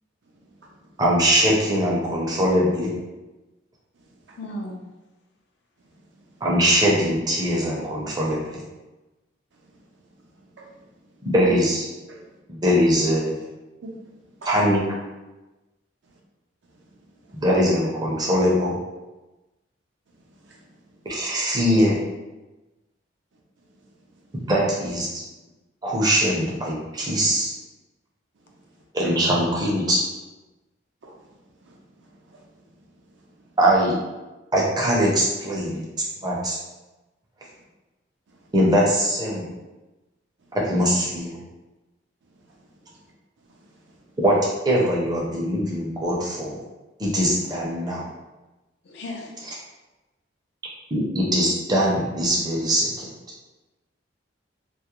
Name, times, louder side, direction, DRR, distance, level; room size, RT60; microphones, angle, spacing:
voice 1, 0.3-0.9 4.0-4.4 5.8-6.3 9.5-10.9 11.2-11.3 12.1-12.3 13.8-14.0 14.2-14.5 16.0-16.1 16.8-17.4 20.1-20.9 23.7-24.2 28.5-29.1 31.0-33.4 38.3-38.5 42.3-43.1 43.4-44.1, right 2 dB, 70° right, -1 dB, 0.5 m, -51 dB
voice 2, 1.0-2.9 6.4-8.6 11.2-11.8 12.5-13.4 14.5-14.8 17.3-18.7 21.1-22.0 24.3-25.2 25.8-27.5 28.9-30.0 33.6-34.0 34.5-35.8 36.2-36.6 38.5-39.5 40.6-41.4 44.2-44.4 44.6-46.6 47.0-48.1 50.9-53.1, equal, 20° right, -4 dB, 0.5 m, -21 dB
voice 3, 4.4-4.9 11.2-11.5 48.8-49.3, left 1 dB, 60° left, 1 dB, 0.4 m, -35 dB
2.3 x 2.0 x 2.9 m, 1.1 s
head